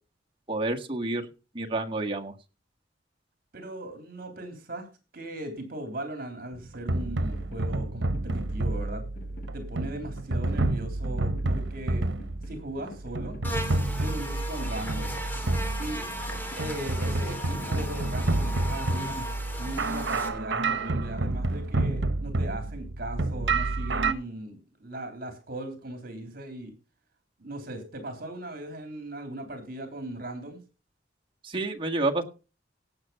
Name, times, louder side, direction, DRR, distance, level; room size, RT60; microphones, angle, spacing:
voice 1, 0.5-1.3 1.5-2.3 31.4-32.2, right 2 dB, 30° right, 2 dB, 1.7 m, -29 dB
voice 2, 3.5-4.9 5.1-9.0 9.5-12.1 12.5-13.4 14.0-15.2 15.8-16.0 16.6-19.3 19.5-26.7 27.4-30.6, right 1 dB, 55° right, 6 dB, 3.4 m, -38 dB
sound 1, 6.5-24.1, right 2 dB, 80° right, 1.1 m, -29 dB
sound 2, 6.9-22.7, equal, 55° left, 2.1 m, -50 dB
Buzz, 13.4-20.3, equal, 10° left, 2.8 m, -37 dB
17.5 x 6.9 x 5.7 m, 0.35 s
head